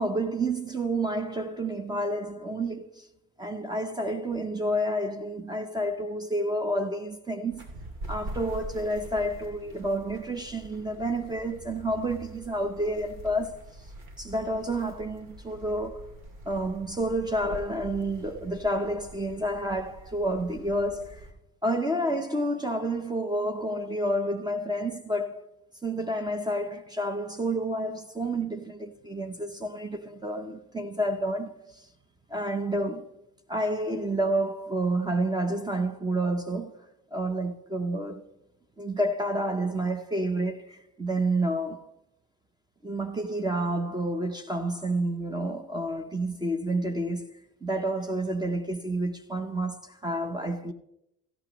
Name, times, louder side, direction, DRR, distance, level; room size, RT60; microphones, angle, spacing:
voice 1, 0.0-3.1 3.4-7.7 8.1-13.6 14.2-16.0 16.5-21.3 21.6-25.4 25.8-31.8 32.3-33.1 33.5-36.7 37.1-38.3 38.8-41.9 42.8-47.3 47.6-50.7, right 1 dB, 10° right, 0.6 m, -29 dB
sound 1, 7.5-21.3, right 1 dB, 90° right, 2.7 m, -44 dB
16.0 x 15.0 x 3.0 m
cardioid pair, 175°, 35 cm